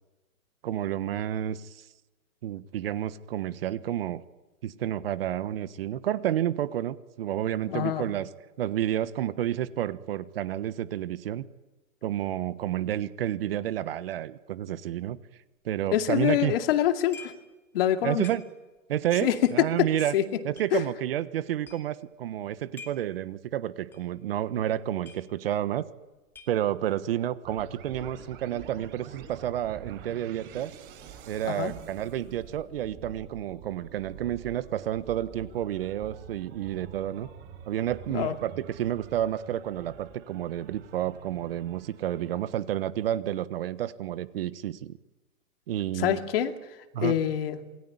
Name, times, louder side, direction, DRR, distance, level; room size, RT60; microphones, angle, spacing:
voice 1, 0.6-1.8 2.4-4.2 4.6-8.3 8.6-11.4 12.0-15.2 15.6-16.5 18.0-18.4 18.9-20.1 20.4-25.8 26.5-30.7 31.3-37.3 37.7-45.0 45.7-46.2 46.9-47.2, right 11 dB, 45° right, 13 dB, 1.3 m, -30 dB
voice 2, 7.7-8.1 15.9-17.3 17.7-18.3 19.2-19.9 20.1-20.4 20.7-20.8 31.4-31.7 38.1-38.3 46.0-46.5 47.0-47.6, left 11 dB, 40° left, 6 dB, 2.5 m, -25 dB
sound 1, 17.1-17.5 17.8-17.9 18.2-18.8 19.4-20.7 21.3-21.4 21.6-22.0 22.5-23.2 23.5-23.6 23.9-24.1 24.4-24.5 24.8-25.7 26.0-26.9, left 4 dB, 5° left, 2.2 m, -48 dB
sound 2, 27.4-42.4, right 8 dB, 25° right, 7.8 m, -47 dB
27.5 x 22.5 x 9.5 m, 1.1 s
hypercardioid pair, 160°, 42 cm